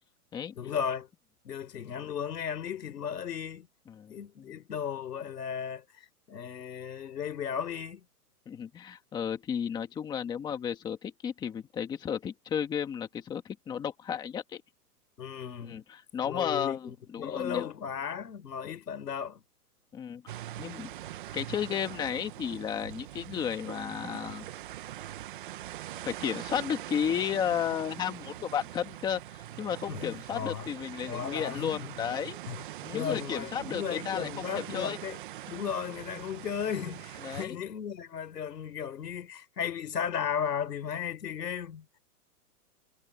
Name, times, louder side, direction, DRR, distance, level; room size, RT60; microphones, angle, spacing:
voice 1, 0.5-1.1 1.4-3.7 4.1-8.0 15.2-15.8 16.2-19.4 29.9-30.7 31.1-31.9 32.5-32.6 32.9-35.2 35.5-41.9, left 8 dB, 85° left, 4.2 m, -35 dB
voice 2, 3.9-4.6 8.5-14.6 15.6-17.7 19.9-20.9 21.3-24.5 26.0-32.4 32.8-34.4 34.7-35.0 37.2-37.6, left 8 dB, 10° left, 1.5 m, -33 dB
sound 1, 20.3-37.5, right 13 dB, 35° right, 1.0 m, -42 dB
hypercardioid pair, 165°, 47 cm